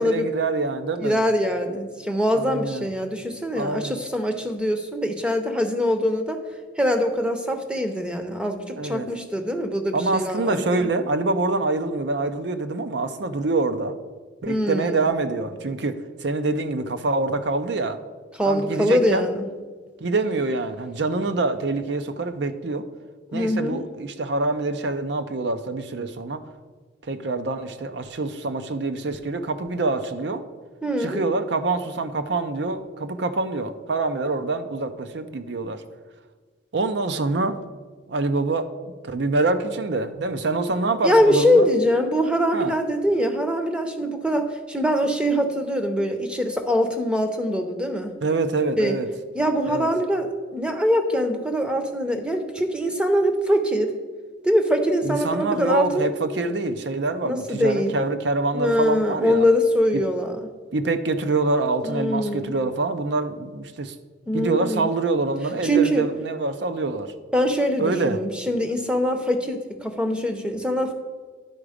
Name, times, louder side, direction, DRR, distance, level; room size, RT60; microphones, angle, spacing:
voice 1, 0.0-1.2 2.3-2.9 3.5-4.0 8.8-9.1 9.9-14.0 14.4-18.0 18.5-19.3 20.0-22.9 23.3-26.4 27.1-30.4 31.0-35.8 36.7-37.6 38.1-38.7 39.0-41.7 42.5-42.7 48.2-49.1 49.7-49.9 55.0-59.5 59.9-60.0 60.7-64.0 64.3-67.1 67.8-68.2, right 3 dB, 65° right, 0.6 m, -25 dB
voice 2, 1.0-6.4 6.8-10.9 14.5-15.0 18.4-19.5 23.3-23.8 30.8-31.2 41.0-48.2 48.8-49.0 49.3-53.9 54.4-56.1 57.2-57.9 58.5-60.5 61.8-62.5 64.3-64.9 65.6-66.0 67.3-70.9, equal, 5° right, 0.7 m, -23 dB
10.5 x 4.9 x 5.0 m
head